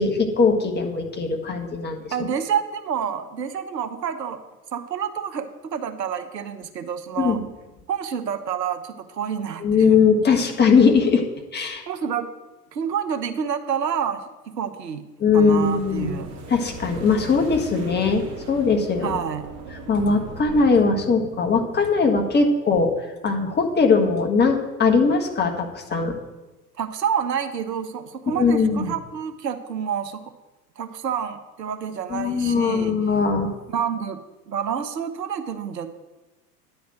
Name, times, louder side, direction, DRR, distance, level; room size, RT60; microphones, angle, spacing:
voice 1, 0.0-2.0 7.2-7.4 9.6-11.2 11.5-11.8 15.2-16.2 16.5-19.2 19.9-22.9 23.2-26.1 28.3-28.9 32.1-33.5, left 4 dB, 20° left, 2 dB, 1.5 m, -20 dB
voice 2, 2.1-4.4 4.7-7.4 7.9-10.0 11.9-12.3 12.7-16.3 19.0-19.5 26.8-30.3 30.8-32.9 33.7-35.9, right 7 dB, 80° right, 8 dB, 1.0 m, -28 dB
sound 1, 15.6-20.6, right 4 dB, 35° right, 2.5 m, -40 dB
9.8 x 5.2 x 7.5 m, 1.1 s
figure-of-eight pair, 90°, 49 cm